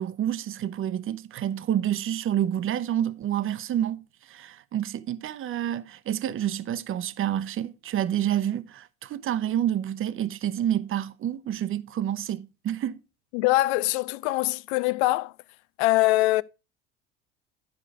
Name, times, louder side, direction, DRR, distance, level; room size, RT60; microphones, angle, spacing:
voice 1, 0.0-13.0, right 11 dB, 40° right, 0.8 m, -28 dB
voice 2, 13.3-15.3 15.8-16.4, left 19 dB, 70° left, 0.5 m, -23 dB
11.0 x 4.9 x 4.7 m
hypercardioid pair, 75°, 34 cm